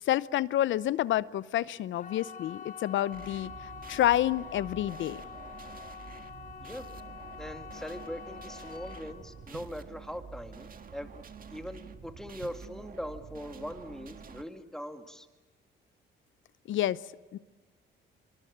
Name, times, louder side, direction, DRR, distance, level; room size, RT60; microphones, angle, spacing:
voice 1, 0.0-5.2 16.7-17.0 17.3-17.4, left 13 dB, 75° left, 18 dB, 0.7 m, -29 dB
sound 1, 1.9-12.8 13.0-13.6 14.0-14.1, left 7 dB, 40° left, 4.5 m, -47 dB
sound 2, 3.1-14.4, right 6 dB, 45° right, 1.7 m, -48 dB
voice 2, 7.4-11.2 11.5-15.3, equal, 5° left, 6 dB, 2.1 m, -41 dB
sound 3, 9.5-10.4 12.4-13.3, right 9 dB, 65° right, 1.3 m, -53 dB
24.5 x 23.5 x 8.7 m, 1.2 s
cardioid pair, 90°, 20 cm